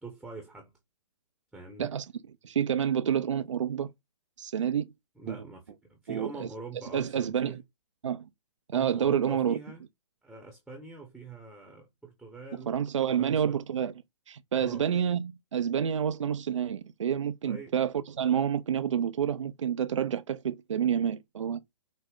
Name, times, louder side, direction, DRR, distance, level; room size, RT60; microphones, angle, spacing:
voice 1, 0.0-0.7 1.5-1.9 5.2-7.6 8.7-9.8 10.2-12.7 13.1-13.6 14.6-14.9 17.4-17.8, right 3 dB, ahead, 0.8 m, -44 dB
voice 2, 2.4-3.9 4.4-4.9 5.3-5.4 6.1-6.5 6.9-7.6 8.0-8.3 8.7-9.6 12.7-13.9 14.3-21.6, right 8 dB, 70° right, 0.4 m, -28 dB
5.1 x 2.0 x 3.8 m
figure-of-eight pair, 120°, 16 cm